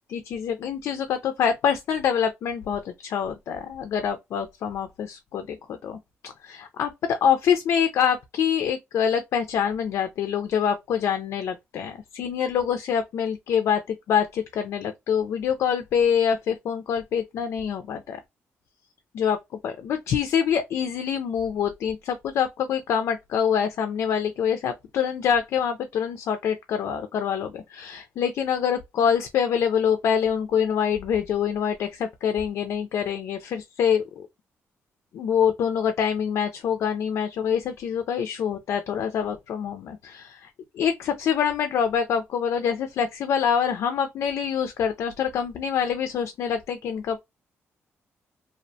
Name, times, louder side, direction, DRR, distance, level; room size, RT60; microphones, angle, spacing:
voice 1, 0.1-18.2 19.1-19.4 19.6-34.3 35.1-47.2, left 7 dB, 70° left, 0.3 m, -25 dB
2.6 x 2.1 x 2.6 m
wide cardioid pair, 165°, 5 cm